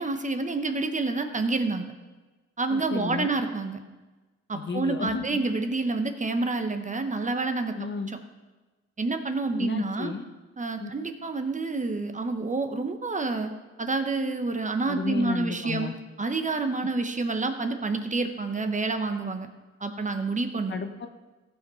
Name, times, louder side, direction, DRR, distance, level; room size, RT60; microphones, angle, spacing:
voice 1, 0.0-1.9 2.6-3.8 4.5-7.7 8.1-8.2 9.0-10.1 10.6-13.5 13.8-15.9 16.2-19.5 19.8-20.8, right 3 dB, 25° right, 7 dB, 0.9 m, -28 dB
voice 2, 2.7-3.3 4.5-5.4 7.8-8.1 9.6-10.2 10.8-10.9 14.9-15.9 20.7-21.1, left 4 dB, 35° left, 7 dB, 0.9 m, -32 dB
15.0 x 5.4 x 5.6 m, 1.2 s
cardioid pair, 90°, 30 cm